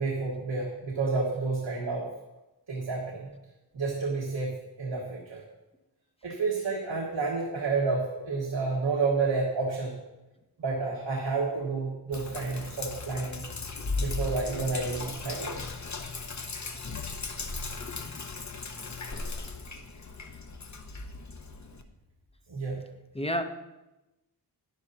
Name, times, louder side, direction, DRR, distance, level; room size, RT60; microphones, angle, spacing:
voice 1, 0.0-2.1 2.7-3.3 3.7-5.4 6.2-9.9 10.6-13.4 14.0-15.6 22.5-22.8, right 4 dB, 90° right, -3 dB, 1.6 m, -30 dB
Sink (filling or washing), 12.1-21.8, left 3 dB, 40° left, 0.9 m, -37 dB
voice 2, 19.1-19.6 23.1-23.4, equal, 15° left, 7 dB, 0.7 m, -33 dB
11.0 x 10.5 x 2.8 m, 0.99 s
wide cardioid pair, 85°, 43 cm